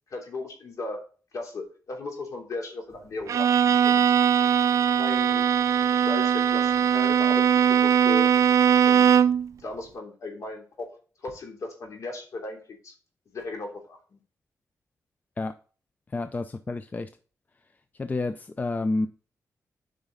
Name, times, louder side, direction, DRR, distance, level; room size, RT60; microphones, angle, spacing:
voice 1, 0.1-1.0 1.3-4.0 4.9-5.5 6.0-8.3 8.8-9.1 9.6-10.9 11.2-12.6 12.8-12.9 13.3-14.2, left 2 dB, 65° left, 1 dB, 2.9 m, -36 dB
Bowed string instrument, 3.3-9.5, right 8 dB, 60° right, 0.4 m, -20 dB
voice 2, 16.1-17.1 18.0-19.1, left 2 dB, 30° left, 10 dB, 0.5 m, -29 dB
8.9 x 5.1 x 3.9 m, 0.38 s
cardioid pair, 105°, 6 cm